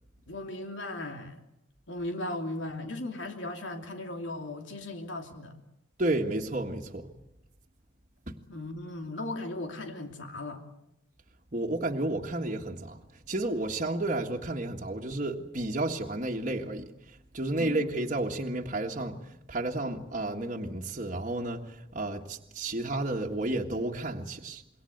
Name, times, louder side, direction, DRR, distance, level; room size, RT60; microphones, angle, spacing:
voice 1, 0.3-1.4 1.9-5.5 8.5-10.6 17.6-17.9, left 2 dB, 80° left, 2.8 m, -37 dB
voice 2, 6.0-7.1 8.3-8.4 11.5-13.0 13.3-16.9 17.3-19.2 19.5-21.6 21.9-24.6, right 2 dB, 40° right, 1.7 m, -31 dB
27.0 x 23.0 x 8.0 m
head